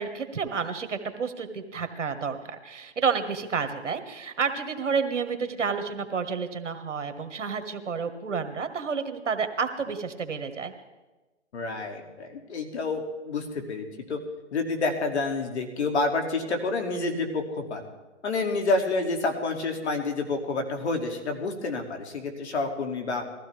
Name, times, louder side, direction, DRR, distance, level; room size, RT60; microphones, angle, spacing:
voice 1, 0.0-10.7, right 5 dB, 75° right, 8 dB, 1.6 m, -30 dB
voice 2, 11.5-14.2 14.5-17.8 18.2-23.2, left 3 dB, 65° left, 4 dB, 2.6 m, -29 dB
20.5 x 15.0 x 3.4 m, 1.2 s
hypercardioid pair, 145°, 37 cm